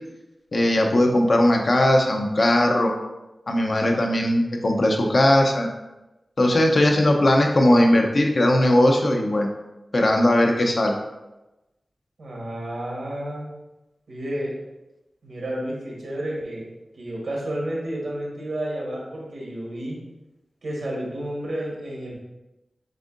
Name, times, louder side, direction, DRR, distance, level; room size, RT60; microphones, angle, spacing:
voice 1, 0.5-2.9 3.5-5.7 6.4-9.5 9.9-11.0, left 1 dB, 55° left, 2 dB, 0.7 m, -19 dB
voice 2, 12.2-13.5 14.1-14.5 15.2-16.7 16.9-20.0 20.6-22.2, right 1 dB, 85° right, -3 dB, 1.2 m, -31 dB
7.4 x 2.7 x 2.5 m, 1.0 s
wide cardioid pair, 75°, 0 cm